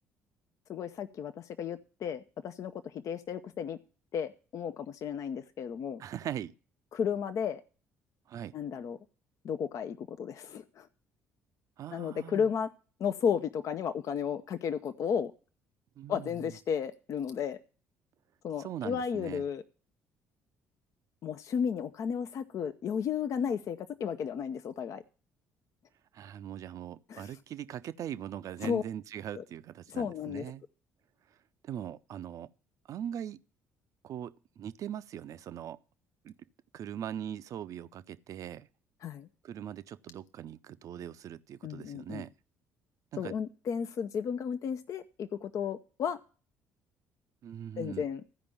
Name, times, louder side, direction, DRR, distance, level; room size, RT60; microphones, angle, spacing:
voice 1, 0.7-3.8 4.1-6.0 6.9-7.6 8.5-9.0 9.4-10.9 11.9-12.7 13.0-15.3 16.1-17.6 18.4-19.6 21.2-25.0 27.1-27.3 28.6-28.8 29.3-29.4 29.9-30.5 39.0-39.3 41.6-42.2 43.2-46.2 47.8-48.2, left 7 dB, 50° left, 0.6 m, -33 dB
voice 2, 6.0-6.5 8.3-8.5 11.8-12.5 16.0-16.5 18.6-19.4 26.1-30.6 31.6-32.5 32.9-33.4 34.0-35.8 36.2-36.3 36.7-38.7 39.4-42.3 43.1-43.3 47.4-48.0, right 10 dB, 50° right, 0.6 m, -41 dB
14.0 x 5.2 x 7.0 m
figure-of-eight pair, 50°, 7 cm